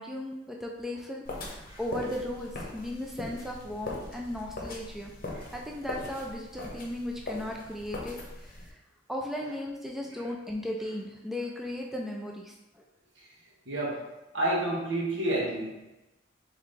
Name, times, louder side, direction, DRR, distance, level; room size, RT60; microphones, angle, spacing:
voice 1, 0.0-5.1 5.5-8.8 9.1-12.8, left 1 dB, ahead, -1 dB, 0.3 m, -36 dB
sound 1, 1.3-8.7, left 2 dB, 50° left, 0.8 m, -41 dB
voice 2, 13.7-14.0 14.3-15.8, right 1 dB, 75° right, -4 dB, 1.4 m, -30 dB
3.8 x 3.6 x 3.3 m, 1.0 s
head